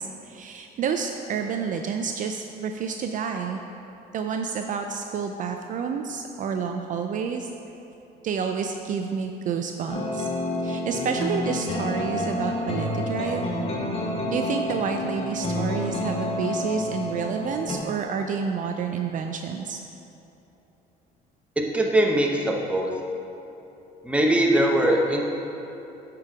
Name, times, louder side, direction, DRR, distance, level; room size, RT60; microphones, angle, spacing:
voice 1, 0.0-3.6 4.1-7.5 8.2-10.3 10.6-13.5 14.3-19.8, right 6 dB, 50° right, 4 dB, 0.4 m, -29 dB
sound 1, 9.9-17.8, left 1 dB, 35° left, 1.1 m, -29 dB
voice 2, 21.7-22.9 24.0-25.2, right 1 dB, 5° right, 0 dB, 0.9 m, -21 dB
8.4 x 4.6 x 4.8 m, 3.0 s
cardioid pair, 110°, 17 cm